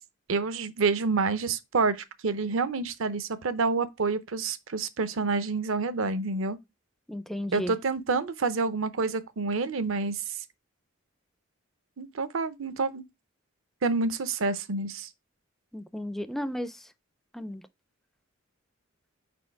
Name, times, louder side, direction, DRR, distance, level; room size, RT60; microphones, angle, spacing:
voice 1, 0.3-2.0 2.2-6.6 7.5-10.4 12.0-13.0 13.8-15.1, right 4 dB, 65° right, 0.6 m, -28 dB
voice 2, 7.1-7.7 15.7-16.8 17.3-17.6, left 1 dB, ahead, 0.4 m, -34 dB
5.0 x 4.3 x 4.6 m
head